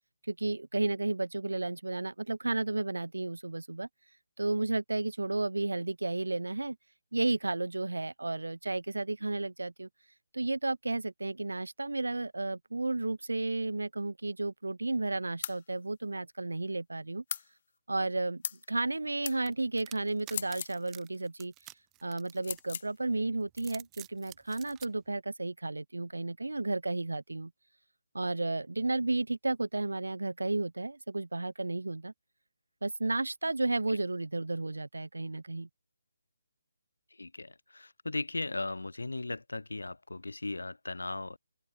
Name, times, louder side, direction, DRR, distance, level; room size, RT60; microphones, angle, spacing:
voice 1, 0.3-3.9 4.4-6.8 7.1-9.9 10.3-17.2 17.9-18.4 18.7-21.5 22.0-27.5 28.1-32.1 32.8-35.7, right 2 dB, 80° right, 1.5 m, -32 dB
sound 1, 15.4-15.6 17.3-17.5 18.4-18.6 19.2-19.4 20.3-20.8 22.4-22.9, left 8 dB, 40° left, 0.4 m, -37 dB
sound 2, 19.5-22.9 23.4-24.9, right 19 dB, 15° right, 0.6 m, -50 dB
voice 2, 37.1-41.4, left 2 dB, 80° left, 3.0 m, -37 dB
open air
figure-of-eight pair, 150°, 0 cm